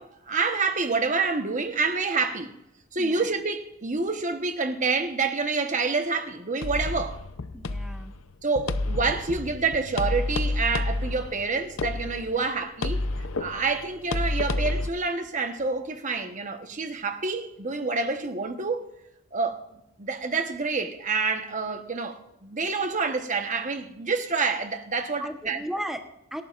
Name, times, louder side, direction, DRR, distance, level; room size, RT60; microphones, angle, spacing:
voice 1, 0.0-2.5 2.9-7.2 8.4-13.0 13.4-18.9 19.3-19.6 20.0-25.6, right 4 dB, 35° right, 1.1 m, -27 dB
sound 1, 6.6-14.9, left 2 dB, 70° left, 0.7 m, -30 dB
voice 2, 7.5-8.1 25.2-26.4, equal, ahead, 1.0 m, -35 dB
25.5 x 11.5 x 2.5 m
head